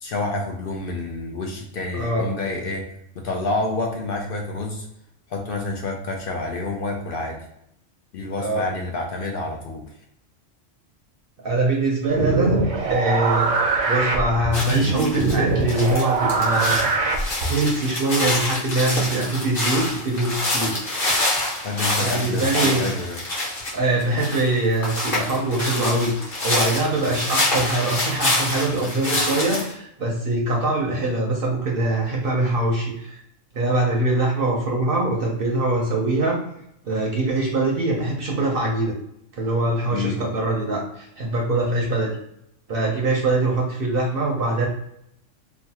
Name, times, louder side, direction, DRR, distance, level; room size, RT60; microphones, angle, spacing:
voice 1, 0.0-2.9 3.2-4.9 5.3-7.4 8.1-9.9 21.6-23.2 27.0-27.2 39.9-40.2, left 2 dB, 60° left, 1 dB, 0.6 m, -28 dB
voice 2, 2.0-2.3 8.4-8.6 11.4-13.5 13.9-16.8 17.2-20.8 22.0-22.8 23.7-26.2 26.4-33.2 33.5-36.4 36.8-38.9 39.3-42.2 42.7-44.7, right 2 dB, 55° right, -1 dB, 0.7 m, -23 dB
sound 1, 12.1-17.6, right 3 dB, 85° right, 1.1 m, -22 dB
sound 2, 14.5-15.4 15.7-29.7, left 1 dB, 45° left, 1.2 m, -26 dB
3.0 x 2.3 x 2.8 m, 0.76 s
omnidirectional pair, 1.3 m